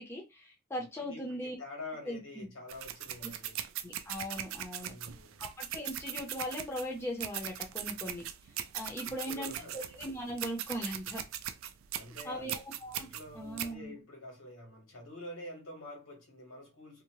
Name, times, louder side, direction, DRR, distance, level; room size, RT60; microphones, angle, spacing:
voice 1, 0.0-1.5 2.0-2.5 3.2-3.3 3.8-4.9 5.4-8.2 8.7-11.2 12.2-13.1 13.3-13.9, equal, 10° left, 0.5 m, -39 dB
voice 2, 1.0-3.6 4.8-5.4 9.0-9.8 11.9-12.5 12.9-17.0, left 2 dB, 90° left, 1.4 m, -47 dB
sound 1, 2.7-13.7, right 11 dB, 80° right, 0.3 m, -40 dB
2.7 x 2.0 x 2.9 m
head